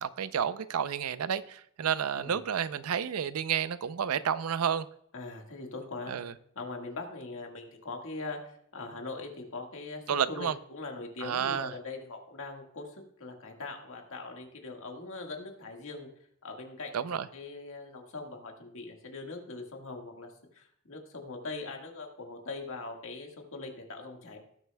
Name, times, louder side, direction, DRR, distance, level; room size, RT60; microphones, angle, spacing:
voice 1, 0.0-4.9 6.1-6.3 10.1-10.5 11.2-11.7 16.9-17.2, right 8 dB, 90° right, 0.5 m, -30 dB
voice 2, 5.1-6.2 6.5-16.1 16.4-24.4, left 3 dB, 65° left, 1.6 m, -41 dB
18.0 x 6.7 x 2.2 m
head